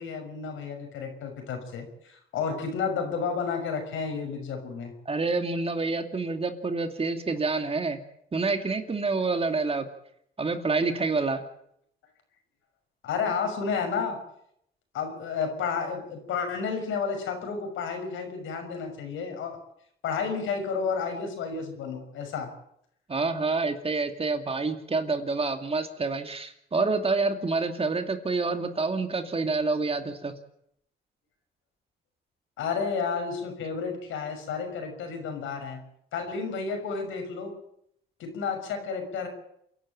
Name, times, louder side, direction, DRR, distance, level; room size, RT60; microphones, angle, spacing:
voice 1, 0.0-4.9 13.0-14.2 14.9-19.5 20.0-22.5 32.6-35.8 36.1-37.6 38.2-39.3, left 5 dB, 85° left, 5 dB, 6.2 m, -31 dB
voice 2, 5.1-8.0 8.3-9.9 10.4-11.4 23.1-30.3, right 3 dB, 30° right, 7 dB, 2.5 m, -27 dB
28.5 x 11.5 x 8.9 m, 0.73 s
cardioid pair, 90°, 20 cm